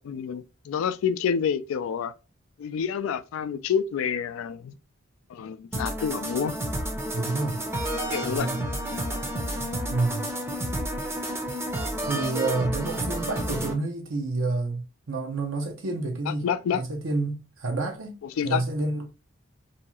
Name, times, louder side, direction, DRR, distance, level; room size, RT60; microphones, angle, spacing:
voice 1, 0.0-2.1 2.6-4.8 5.3-6.6 8.1-8.5 16.3-16.8 18.4-18.6, left 7 dB, 85° left, 0.3 m, -28 dB
sound 1, 5.7-13.7, right 1 dB, 10° right, 0.5 m, -30 dB
voice 2, 7.1-7.6 8.3-8.6 9.9-10.3 12.0-16.5 16.7-18.2 18.4-19.1, right 3 dB, 75° right, 0.7 m, -29 dB
2.7 x 2.3 x 2.9 m
head